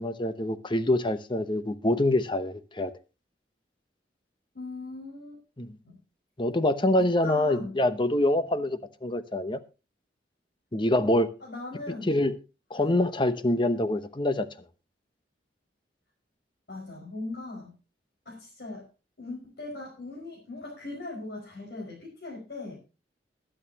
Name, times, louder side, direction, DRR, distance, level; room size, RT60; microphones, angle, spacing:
voice 1, 0.0-2.9 5.6-5.7 6.4-9.6 10.7-11.3 12.1-12.4 12.7-14.5, left 1 dB, 25° left, 0.9 m, -25 dB
voice 2, 4.5-5.4 5.8-6.0 7.0-7.8 11.4-12.2 12.7-13.0 16.7-17.7 18.3-18.9 19.2-22.8, left 2 dB, 65° left, 5.4 m, -39 dB
21.5 x 9.0 x 2.9 m
head